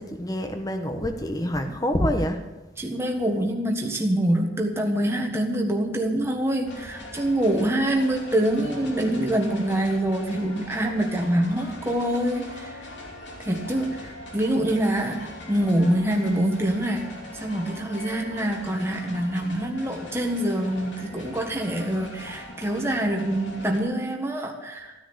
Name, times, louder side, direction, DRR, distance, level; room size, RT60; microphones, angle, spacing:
voice 1, 0.0-2.4, equal, 20° left, 6 dB, 1.2 m, -26 dB
voice 2, 2.8-12.8 13.4-17.1 17.3-24.9, right 1 dB, 15° right, 1 dB, 1.5 m, -25 dB
sound 1, 6.7-23.8, left 1 dB, 75° left, 2.9 m, -41 dB
15.0 x 10.0 x 7.1 m, 1.1 s
head